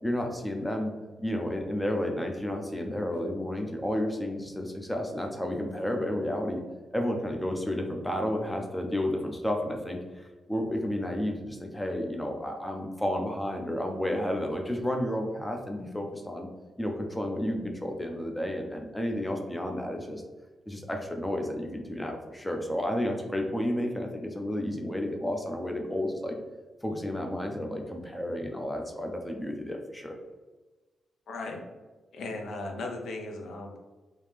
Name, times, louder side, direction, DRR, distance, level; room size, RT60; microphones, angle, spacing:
voice 1, 0.0-0.9 1.2-6.6 6.9-16.5 16.8-20.2 20.7-26.4 26.8-30.2, left 1 dB, 5° left, 2 dB, 0.4 m, -31 dB
voice 2, 31.3-31.7 32.1-33.8, left 2 dB, 80° left, 2 dB, 0.5 m, -37 dB
3.1 x 2.8 x 3.4 m, 1.2 s
wide cardioid pair, 150°, 0 cm